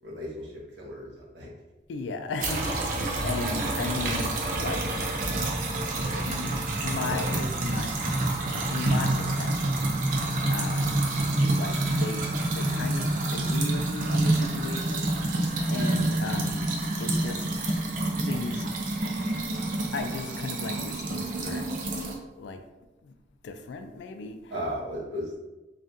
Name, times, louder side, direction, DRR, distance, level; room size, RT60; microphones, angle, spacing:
voice 1, 0.0-1.5 24.5-25.4, equal, 90° right, -4 dB, 1.0 m, -35 dB
voice 2, 1.9-5.2 6.3-6.6 6.8-7.9 8.5-11.1 11.4-16.7 17.0-19.2 19.9-22.1 22.3-22.6 23.0-23.2 23.4-24.5, left 4 dB, 80° left, 7 dB, 0.3 m, -36 dB
sound 1, 2.4-22.2, right 2 dB, 50° right, 0.5 m, -28 dB
3.5 x 2.4 x 2.7 m, 1.1 s
head